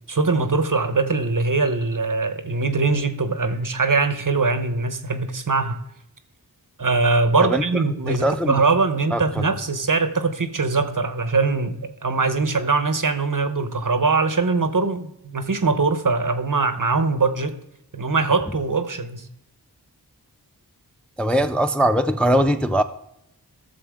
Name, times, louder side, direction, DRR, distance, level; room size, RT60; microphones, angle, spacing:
voice 1, 0.1-5.8 6.8-17.6 17.9-19.3, right 3 dB, 55° right, 1.0 m, -22 dB
voice 2, 7.4-8.5 9.1-9.2 21.2-22.8, right 1 dB, 5° left, 0.4 m, -21 dB
15.0 x 7.0 x 3.6 m
wide cardioid pair, 45°, 39 cm